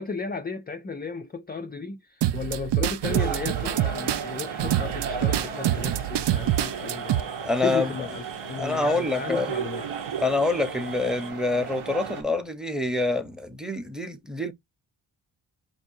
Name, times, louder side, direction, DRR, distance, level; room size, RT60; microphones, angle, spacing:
voice 1, 0.0-7.1 7.6-9.8, left 5 dB, 20° left, 0.4 m, -34 dB
sound 1, 2.2-7.2, right 12 dB, 60° right, 0.5 m, -26 dB
sound 2, 3.0-12.2, right 6 dB, 80° right, 1.1 m, -35 dB
sound 3, 6.3-11.3, right 6 dB, 45° right, 1.0 m, -47 dB
voice 2, 7.4-7.9 8.6-9.5 10.2-14.5, left 2 dB, ahead, 0.8 m, -26 dB
5.3 x 2.7 x 2.6 m
cardioid pair, 75°, 47 cm